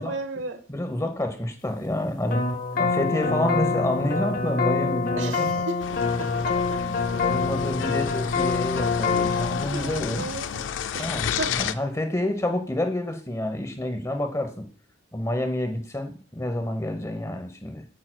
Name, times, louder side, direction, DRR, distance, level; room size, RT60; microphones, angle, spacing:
voice 1, 0.0-0.6 5.2-6.8 9.3-10.7 10.9-11.8 12.2-12.3, right 3 dB, 90° right, 8 dB, 1.1 m, -35 dB
voice 2, 0.7-2.5 2.8-5.5 6.7-10.2 11.0-14.6 15.1-17.8, left 1 dB, 15° left, 5 dB, 0.9 m, -28 dB
sound 1, 2.3-9.7, left 4 dB, 50° left, 0.7 m, -25 dB
sound 2, 5.8-11.7, left 8 dB, 75° left, 0.4 m, -32 dB
8.9 x 7.6 x 2.2 m, 0.41 s
head